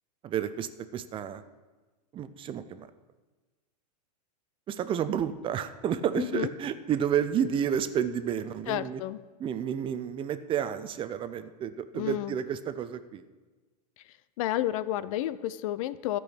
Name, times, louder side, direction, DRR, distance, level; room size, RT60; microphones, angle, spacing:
voice 1, 0.2-1.4 2.1-2.9 4.7-9.0 9.4-13.2, right 9 dB, 25° right, 12 dB, 0.6 m, -31 dB
voice 2, 6.2-6.5 8.7-9.2 11.9-12.3 14.4-16.2, left 13 dB, 55° left, 16 dB, 0.6 m, -31 dB
11.5 x 6.3 x 8.7 m, 1.3 s
hypercardioid pair, 120°, 21 cm